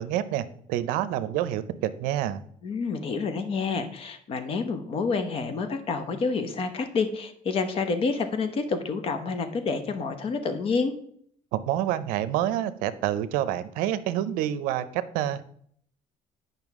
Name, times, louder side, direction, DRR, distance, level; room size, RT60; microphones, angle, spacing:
voice 1, 0.0-2.4 11.5-15.5, right 12 dB, 85° right, 14 dB, 0.5 m, -28 dB
voice 2, 2.6-10.9, left 4 dB, 40° left, 9 dB, 0.9 m, -28 dB
9.1 x 5.5 x 3.6 m, 0.64 s
cardioid pair, 135°, 14 cm